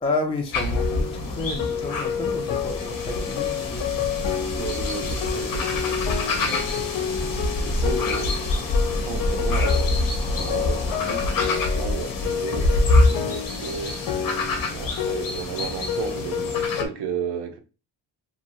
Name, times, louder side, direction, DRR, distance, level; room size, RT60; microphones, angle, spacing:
voice 1, 0.0-4.0 5.0-5.4 6.4-6.7 7.7-8.0, left 2 dB, 15° left, 0.4 m, -31 dB
sound 1, 0.5-16.8, left 2 dB, 50° left, 0.8 m, -26 dB
sound 2, 0.8-16.9, left 8 dB, 80° left, 0.6 m, -30 dB
voice 2, 4.6-6.0 6.3-6.6 7.8-8.4 9.0-14.1 14.7-17.6, right 7 dB, 60° right, 0.7 m, -34 dB
2.7 x 2.2 x 3.0 m
cardioid pair, 110°, 45 cm